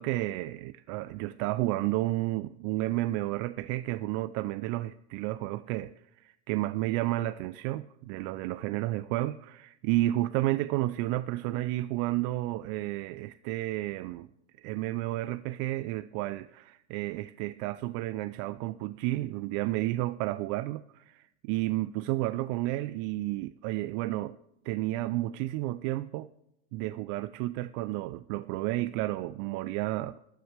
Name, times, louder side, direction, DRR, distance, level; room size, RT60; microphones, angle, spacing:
voice 1, 0.0-14.3 14.6-24.4 24.6-26.3 26.7-30.2, right 17 dB, 60° right, 0.5 m, -31 dB
16.0 x 13.0 x 3.3 m
hypercardioid pair, 95°, 33 cm